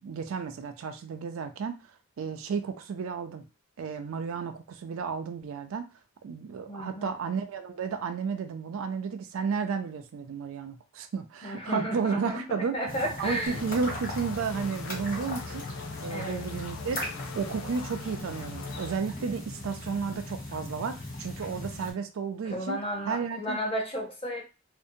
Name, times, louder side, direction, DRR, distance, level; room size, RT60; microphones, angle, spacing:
voice 1, 0.0-3.5 3.8-5.9 6.2-12.8 13.2-15.7 16.0-17.0 17.4-22.8 23.0-23.6, right 5 dB, 80° right, 7 dB, 0.4 m, -33 dB
voice 2, 6.7-7.1 11.4-13.6 16.1-16.4 22.4-24.4, equal, 25° left, 1 dB, 0.6 m, -33 dB
sound 1, 12.9-21.9, left 1 dB, 45° left, 1.2 m, -39 dB
sound 2, 13.5-19.0, left 5 dB, 90° left, 0.4 m, -42 dB
2.6 x 2.1 x 2.6 m, 0.30 s
head